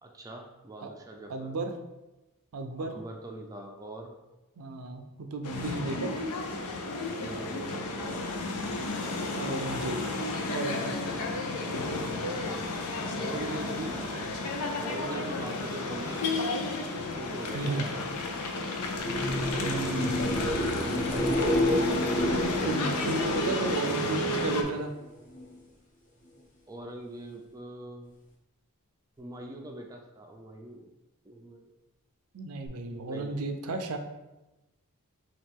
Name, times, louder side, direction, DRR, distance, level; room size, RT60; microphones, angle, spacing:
voice 1, 0.0-1.6 2.8-4.2 7.1-8.2 8.9-9.4 12.7-14.4 14.8-16.3 16.8-18.2 19.5-22.0 26.7-28.1 29.2-30.9 31.2-31.7 33.0-33.5, right 1 dB, 15° right, 1 dB, 0.4 m, -42 dB
voice 2, 1.3-1.8 2.5-3.0 4.6-5.0 5.3-6.1 9.3-10.0 10.5-11.0 17.5-17.8 19.6-20.2 22.6-24.9 32.3-34.0, right 3 dB, 70° right, 6 dB, 0.5 m, -33 dB
sound 1, 5.4-24.6, left 2 dB, 85° left, 0.6 m, -32 dB
sound 2, 18.9-24.7 25.0-25.6 32.7-32.8, equal, 35° left, 0.9 m, -30 dB
5.7 x 2.4 x 3.6 m, 1.0 s
head